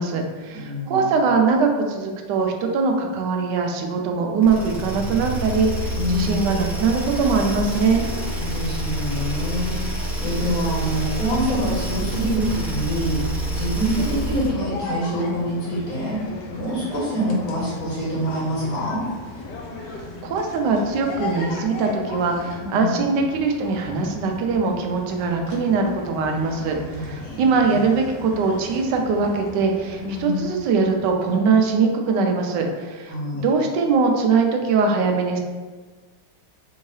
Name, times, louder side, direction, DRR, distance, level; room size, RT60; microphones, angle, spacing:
voice 1, 0.0-8.1 19.8-35.4, right 4 dB, 80° right, 3 dB, 1.2 m, -22 dB
voice 2, 0.5-1.1 5.9-6.5 8.4-13.2 13.5-16.2 16.5-19.0 22.6-23.0 26.9-27.4 27.7-27.8 30.0-30.4 33.1-33.5, equal, 60° left, -7 dB, 1.4 m, -26 dB
sound 1, 4.4-14.6, right 1 dB, ahead, 0.7 m, -27 dB
sound 2, 13.4-31.8, left 2 dB, 80° left, 1.3 m, -37 dB
3.6 x 2.7 x 3.1 m, 1.4 s
omnidirectional pair, 1.9 m